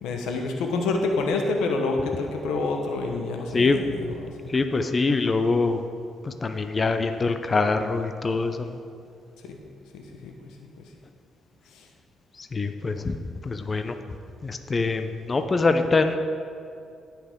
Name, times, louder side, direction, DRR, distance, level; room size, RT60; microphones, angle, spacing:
voice 1, 0.0-4.5 9.4-9.6 9.9-10.8 11.7-11.8, left 3 dB, 90° left, 3 dB, 1.1 m, -28 dB
voice 2, 4.5-5.8 6.3-8.7 12.5-13.1 13.4-13.9 14.4-16.2, left 3 dB, 30° left, 7 dB, 0.6 m, -24 dB
17.5 x 5.9 x 3.7 m, 2.4 s
cardioid pair, 90°, 0 cm